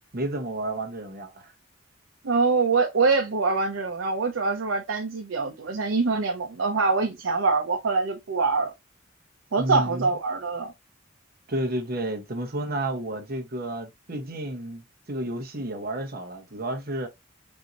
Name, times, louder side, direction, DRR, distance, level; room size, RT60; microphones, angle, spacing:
voice 1, 0.1-1.5 9.6-10.1 11.5-17.1, right 1 dB, 50° right, 1.0 m, -31 dB
voice 2, 2.2-8.7 9.5-10.7, right 4 dB, 85° right, 0.7 m, -24 dB
5.5 x 2.7 x 2.9 m
head